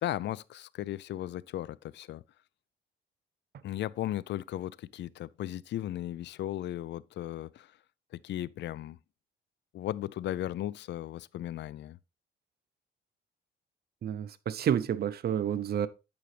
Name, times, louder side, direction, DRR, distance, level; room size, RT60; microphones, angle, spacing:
voice 1, 0.0-2.2 3.6-7.7 8.1-9.0 9.7-12.0, left 13 dB, 65° left, 0.4 m, -36 dB
voice 2, 14.0-15.9, right 9 dB, 50° right, 0.6 m, -29 dB
9.2 x 5.1 x 3.2 m
cardioid pair, 90°, 20 cm